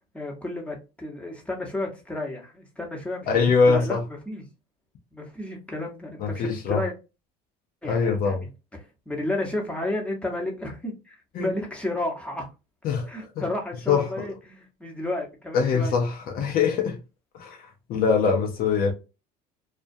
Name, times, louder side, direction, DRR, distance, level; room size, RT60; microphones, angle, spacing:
voice 1, 0.1-4.0 4.3-4.4 5.1-6.9 7.8-8.4 9.1-12.5 13.1-16.0 16.4-16.6, left 1 dB, 5° left, 0.9 m, -32 dB
voice 2, 3.3-4.0 6.2-6.8 7.8-8.4 11.3-11.5 12.8-13.1 13.4-13.5 13.9-14.3 15.5-17.0 17.3-18.9, left 5 dB, 50° left, 0.6 m, -23 dB
2.4 x 2.1 x 2.5 m
supercardioid pair, 100°, 19 cm